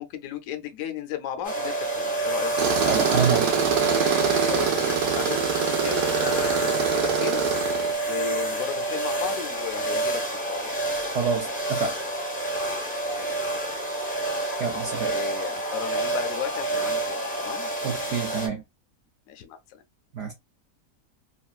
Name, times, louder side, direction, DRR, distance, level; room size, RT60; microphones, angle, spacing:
voice 1, 0.0-2.5 4.5-7.4 8.1-10.7 13.0-13.6 15.0-17.7 19.3-19.6, left 9 dB, 65° left, 0.9 m, -35 dB
sound 1, 1.4-18.5, right 2 dB, 10° left, 0.5 m, -28 dB
Tools, 2.6-7.9, right 8 dB, 85° right, 1.2 m, -25 dB
voice 2, 2.9-3.5 11.1-12.0 14.6-15.2 17.8-18.6 20.1-20.3, right 6 dB, 70° right, 0.7 m, -27 dB
3.1 x 2.2 x 2.3 m
omnidirectional pair, 1.7 m